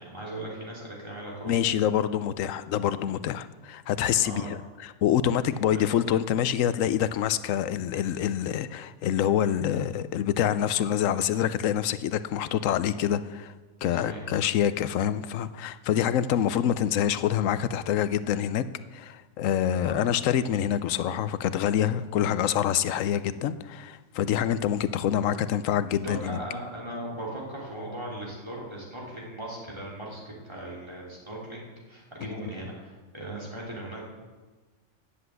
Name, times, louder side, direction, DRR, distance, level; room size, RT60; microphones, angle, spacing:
voice 1, 0.0-1.7 4.2-4.5 5.7-5.9 9.6-9.7 13.9-14.2 15.6-15.7 19.8-20.0 22.9-23.0 25.9-34.0, right 1 dB, 20° right, -4 dB, 3.1 m, -38 dB
voice 2, 1.5-13.5 13.8-18.6 18.9-26.4, left 10 dB, 85° left, 14 dB, 1.0 m, -26 dB
10.0 x 7.8 x 7.9 m, 1.3 s
omnidirectional pair, 1.3 m